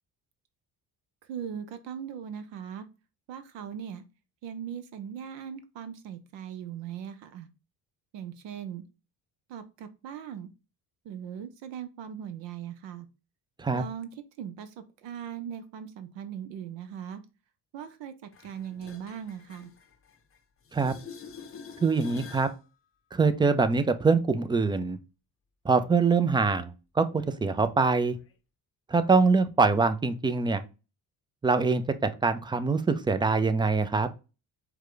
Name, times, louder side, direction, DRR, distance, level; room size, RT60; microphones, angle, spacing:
voice 1, 1.2-2.9 3.3-4.0 4.4-7.5 8.1-8.8 9.5-10.5 11.0-13.1 13.7-14.1 14.4-17.2 17.7-19.7, right 8 dB, 60° right, 10 dB, 0.7 m, -39 dB
sound 1, 18.3-20.4 20.7-22.6 28.3-28.4, left 6 dB, 30° left, 0.7 m, -46 dB
voice 2, 21.8-22.5 23.1-25.0 25.6-28.2 28.9-30.6 31.4-31.8 32.2-34.1, right 4 dB, 10° right, 11 dB, 0.4 m, -24 dB
4.7 x 2.3 x 3.7 m, 0.31 s
hypercardioid pair, 55°, 49 cm